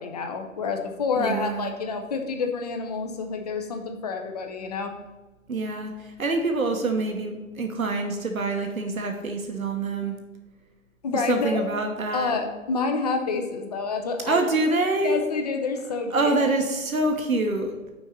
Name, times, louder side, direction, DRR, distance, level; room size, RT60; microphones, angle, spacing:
voice 1, 0.0-4.9 11.0-11.6 12.1-14.7 15.0-16.5, left 4 dB, 30° left, 4 dB, 0.7 m, -28 dB
voice 2, 1.2-1.7 5.5-10.1 11.3-12.4 14.2-15.2 16.1-17.7, right 2 dB, 75° right, 4 dB, 1.1 m, -26 dB
6.3 x 4.5 x 6.4 m, 1.2 s
figure-of-eight pair, 130°, 42 cm